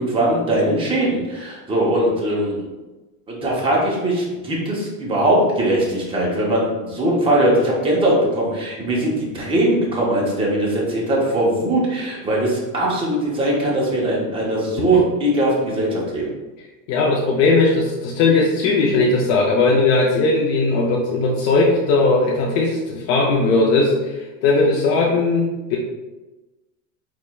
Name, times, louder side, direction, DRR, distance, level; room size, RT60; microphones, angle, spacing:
voice 1, 0.0-2.7 3.3-16.2, right 1 dB, 15° right, -4 dB, 0.6 m, -20 dB
voice 2, 16.9-25.8, left 3 dB, 40° left, -2 dB, 0.4 m, -18 dB
4.3 x 3.0 x 2.2 m, 1.1 s
cardioid pair, 160°, 41 cm